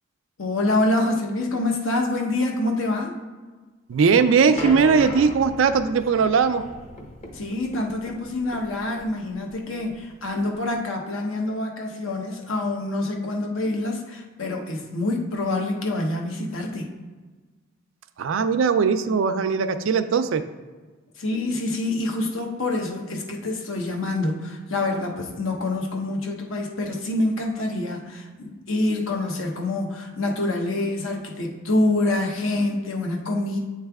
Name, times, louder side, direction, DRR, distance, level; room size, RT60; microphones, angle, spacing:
voice 1, 0.4-3.1 7.3-16.8 21.2-33.6, left 2 dB, 75° left, 1 dB, 1.0 m, -26 dB
sound 1, 3.9-10.8, left 1 dB, 35° left, 0.8 m, -38 dB
voice 2, 3.9-6.6 18.2-20.4, right 5 dB, 70° right, 10 dB, 0.4 m, -19 dB
8.7 x 3.2 x 3.5 m, 1.3 s
head